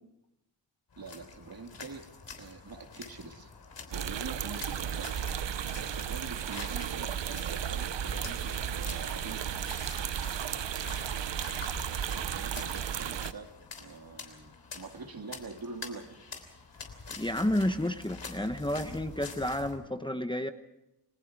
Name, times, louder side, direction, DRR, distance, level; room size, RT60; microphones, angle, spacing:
sound 1, 0.9-19.8, left 4 dB, 85° left, 3.4 m, -47 dB
voice 1, 1.0-2.1 2.4-3.5 3.9-5.2 5.7-9.6 12.0-13.5 13.8-16.2, right 4 dB, 55° right, 4 dB, 2.4 m, -45 dB
sound 2, 3.9-13.3, right 9 dB, 85° right, 0.8 m, -34 dB
voice 2, 17.2-20.5, left 1 dB, 10° left, 7 dB, 1.0 m, -31 dB
29.0 x 21.0 x 4.8 m, 0.87 s
wide cardioid pair, 120°, 42 cm